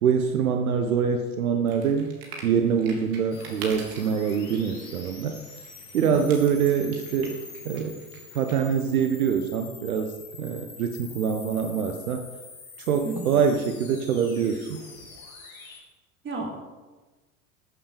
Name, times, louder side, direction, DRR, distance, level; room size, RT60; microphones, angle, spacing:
voice 1, 0.0-2.1 2.4-5.4 5.9-7.4 7.6-8.0 8.3-10.1 10.4-12.2 12.9-14.8, right 7 dB, 70° right, 5 dB, 1.3 m, -24 dB
sound 1, 1.7-9.0, right 4 dB, 50° right, 3.8 m, -45 dB
sound 2, 3.3-15.8, left 5 dB, 70° left, 3.8 m, -45 dB
voice 2, 16.2-16.6, right 2 dB, 25° right, -1 dB, 4.2 m, -32 dB
14.0 x 8.8 x 6.9 m, 1.2 s
figure-of-eight pair, 80°, 43 cm